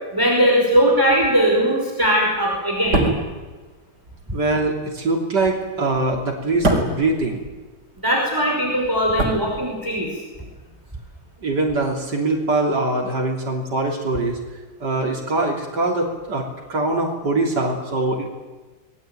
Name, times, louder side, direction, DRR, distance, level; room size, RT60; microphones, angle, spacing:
voice 1, 0.1-3.0 8.0-10.1, equal, 10° right, -1 dB, 5.5 m, -19 dB
sound 1, 2.7-8.1 8.3-10.2 10.4-10.6, right 2 dB, 75° right, 5.3 m, -26 dB
voice 2, 4.3-7.5 11.4-14.4 14.8-18.3, right 2 dB, 90° right, 0 dB, 4.0 m, -23 dB
27.0 x 21.0 x 9.2 m, 1.3 s
omnidirectional pair, 1.8 m